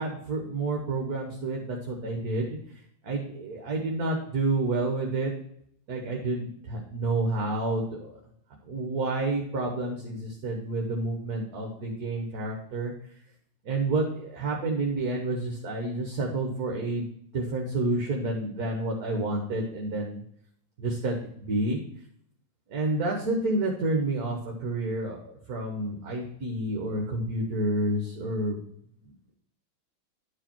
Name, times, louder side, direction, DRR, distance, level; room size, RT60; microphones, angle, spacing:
voice 1, 0.0-2.6 3.0-5.3 5.9-8.1 8.6-12.9 13.6-17.1 17.3-20.2 20.8-21.1 21.5-21.8 22.7-28.6, right 2 dB, 55° right, 0 dB, 1.6 m, -29 dB
10.5 x 5.0 x 4.5 m, 0.67 s
omnidirectional pair, 2.1 m